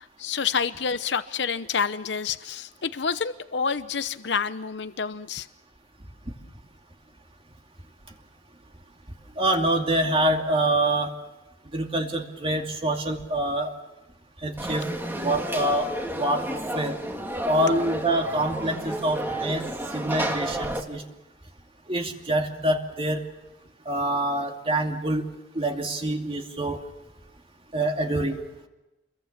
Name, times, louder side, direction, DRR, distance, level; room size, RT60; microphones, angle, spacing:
voice 1, 0.0-5.5, left 6 dB, 75° left, 12 dB, 0.8 m, -28 dB
voice 2, 9.4-11.1 11.7-13.7 14.4-14.9 15.1-17.0 17.4-19.7 19.9-21.0 21.9-23.2 23.9-25.3 25.5-26.8 27.7-28.4, right 1 dB, 35° right, 3 dB, 2.6 m, -26 dB
Conversation / Crowd, 14.6-20.8, right 1 dB, 10° right, 2.5 m, -31 dB
28.5 x 22.5 x 7.3 m, 0.97 s
head